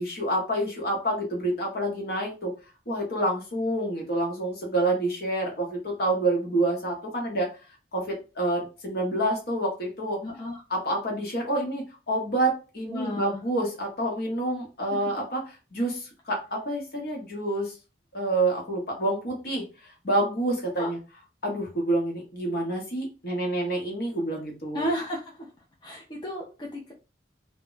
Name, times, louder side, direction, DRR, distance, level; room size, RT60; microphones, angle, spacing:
voice 1, 0.0-2.5 2.9-7.5 7.9-10.2 10.7-15.4 15.7-17.7 18.1-21.0 21.4-24.9, right 1 dB, 60° left, 0 dB, 0.9 m, -28 dB
voice 2, 10.2-10.6 12.9-13.4 20.8-20.9 24.7-25.5 25.8-26.9, equal, 25° left, -3 dB, 0.5 m, -33 dB
2.1 x 2.1 x 3.8 m, 0.32 s
head